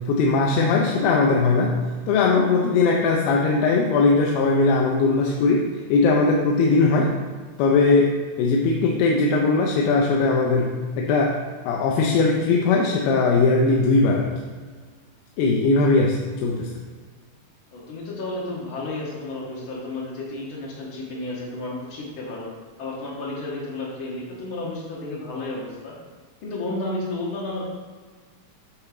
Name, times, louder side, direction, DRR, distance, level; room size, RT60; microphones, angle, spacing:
voice 1, 0.1-1.8 2.1-5.6 5.9-7.1 7.6-8.1 8.4-11.4 11.7-14.3 15.4-16.7, left 3 dB, 80° left, -1 dB, 2.4 m, -19 dB
voice 2, 17.7-22.5 22.8-26.0 26.4-27.6, left 2 dB, 65° left, -5 dB, 1.3 m, -32 dB
8.7 x 3.9 x 4.8 m, 1.5 s
omnidirectional pair, 4.3 m